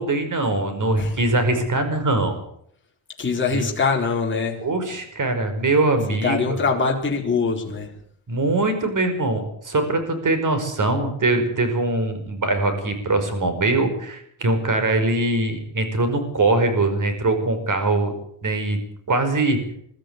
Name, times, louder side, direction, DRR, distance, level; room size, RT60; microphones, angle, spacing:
voice 1, 0.0-2.4 3.5-3.7 4.6-6.6 8.3-18.1 18.4-18.8 19.1-19.6, right 2 dB, 40° right, 8 dB, 5.2 m, -22 dB
voice 2, 3.2-4.6 6.1-7.9, left 4 dB, 25° left, -1 dB, 4.3 m, -23 dB
22.5 x 13.5 x 9.6 m, 0.70 s
cardioid pair, 135°, 48 cm